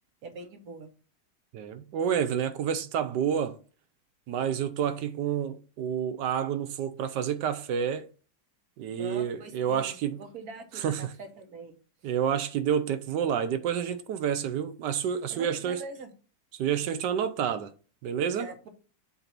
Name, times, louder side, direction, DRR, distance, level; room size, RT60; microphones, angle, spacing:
voice 1, 0.2-0.9 9.0-11.8 15.3-16.1 18.3-18.7, right 3 dB, 55° right, 1.5 m, -43 dB
voice 2, 1.5-3.6 4.3-8.1 8.8-10.2 10.8-11.1 12.0-15.8 16.5-17.7 18.0-18.5, right 8 dB, 75° right, 1.2 m, -29 dB
7.9 x 2.7 x 5.9 m
omnidirectional pair, 2.0 m